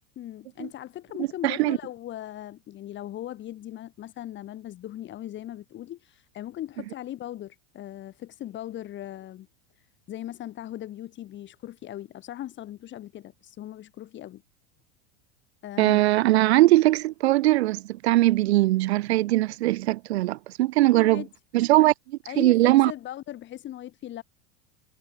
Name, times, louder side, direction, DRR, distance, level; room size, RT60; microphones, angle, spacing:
voice 1, 0.2-9.5 9.8-14.4 15.6-16.0 20.9-21.3 21.8-21.9 22.3-24.2, left 13 dB, 35° left, 4.1 m, -39 dB
voice 2, 1.2-1.8 15.8-21.2 21.5-21.9 22.4-22.9, right 17 dB, 85° right, 0.8 m, -20 dB
supercardioid pair, 130°, 31 cm